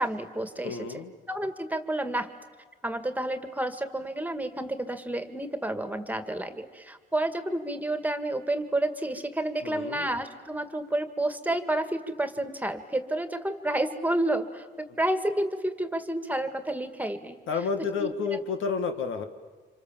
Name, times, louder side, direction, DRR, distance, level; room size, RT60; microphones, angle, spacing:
voice 1, 0.0-2.3 2.8-17.4 18.0-18.4, right 1 dB, 10° right, 8 dB, 2.0 m, -30 dB
voice 2, 0.6-1.1 9.6-10.1 17.5-19.2, left 5 dB, 80° left, 6 dB, 2.2 m, -30 dB
30.0 x 26.0 x 7.5 m, 1.4 s
cardioid pair, 90°, 20 cm